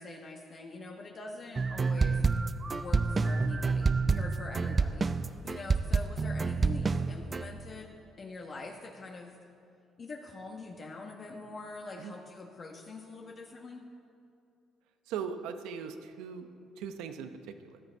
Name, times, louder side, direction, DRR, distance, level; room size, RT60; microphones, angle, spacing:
voice 1, 0.0-2.2 2.7-9.4 10.0-13.8, left 3 dB, 40° left, 0 dB, 1.2 m, -44 dB
sound 1, 1.6-7.4, right 4 dB, 30° right, 0.5 m, -28 dB
voice 2, 15.1-16.5 16.8-17.8, right 7 dB, 90° right, 8 dB, 0.8 m, -39 dB
15.0 x 11.5 x 4.5 m, 2.5 s
cardioid pair, 95°, 0 cm